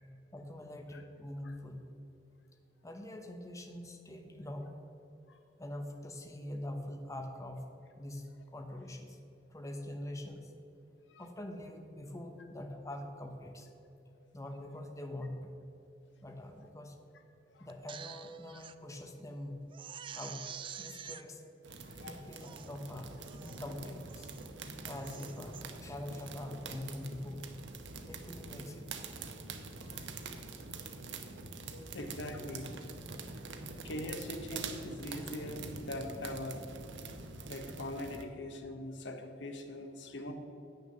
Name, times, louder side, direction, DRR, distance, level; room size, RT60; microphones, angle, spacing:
voice 1, 0.3-1.9 2.8-4.8 5.6-9.2 9.5-10.5 11.2-13.7 14.3-15.5 16.2-17.0 17.6-19.6 20.1-21.4 21.7-24.3 24.8-27.4 28.0-29.0, left 1 dB, 20° left, 4 dB, 0.8 m, -44 dB
Crying sobbing, 17.7-18.7 19.2-19.3 19.7-21.2 21.9-22.0 22.3-22.7 23.2-23.6 24.1-24.5 24.9-25.6 26.1-26.4, right 8 dB, 30° right, 0.3 m, -48 dB
sound 1, 21.6-38.2, right 4 dB, 80° right, 0.9 m, -45 dB
voice 2, 31.7-32.7 33.8-36.6 37.5-40.3, left 1 dB, 80° left, 6 dB, 1.0 m, -42 dB
8.9 x 6.6 x 6.5 m, 2.8 s
head